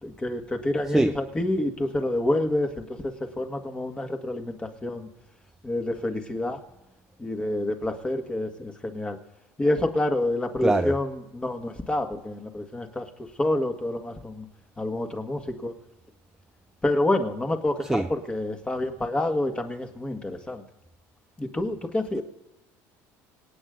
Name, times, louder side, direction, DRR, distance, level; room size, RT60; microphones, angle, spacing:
voice 1, 0.0-5.1 5.6-6.6 7.2-9.2 9.6-13.1 13.4-14.5 14.8-15.7 16.8-20.6 21.4-22.2, left 1 dB, 15° left, 1.9 m, -28 dB
voice 2, 10.6-10.9 17.9-18.1, right 2 dB, 5° right, 0.4 m, -22 dB
26.5 x 9.2 x 3.8 m
cardioid pair, 115°, 7 cm